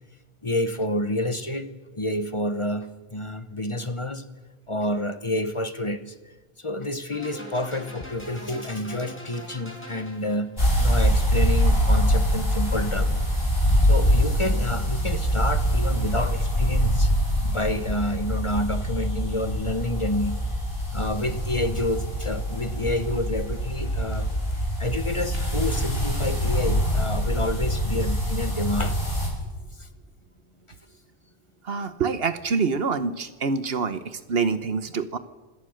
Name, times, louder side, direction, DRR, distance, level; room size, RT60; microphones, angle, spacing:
voice 1, 0.4-4.2 4.7-6.1 6.6-13.2 13.8-17.1 17.4-20.4 20.9-24.3 24.8-29.0 29.8-29.9, left 1 dB, 30° left, 11 dB, 1.1 m, -29 dB
sound 1, 7.1-10.6, left 1 dB, 10° left, 5.4 m, -42 dB
sound 2, 10.6-29.3, equal, 65° left, 6.0 m, -24 dB
voice 2, 31.6-35.2, right 5 dB, 65° right, 12 dB, 1.2 m, -26 dB
25.5 x 18.0 x 6.5 m, 1.2 s
omnidirectional pair, 1.1 m